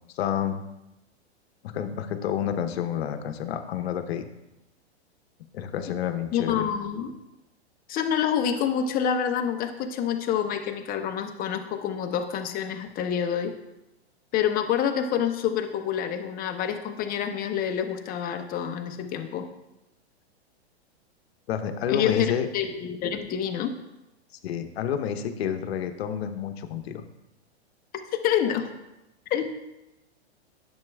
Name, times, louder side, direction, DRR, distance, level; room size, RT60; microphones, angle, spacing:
voice 1, 0.1-0.6 1.6-4.3 5.5-6.7 21.5-22.5 24.4-27.1, left 9 dB, 65° left, 9 dB, 0.8 m, -29 dB
voice 2, 6.3-7.1 7.9-13.5 14.3-19.5 21.9-23.7 28.2-28.7 29.3-29.5, left 8 dB, 25° left, 6 dB, 0.8 m, -27 dB
10.5 x 7.1 x 2.3 m, 0.94 s
hypercardioid pair, 120°, 33 cm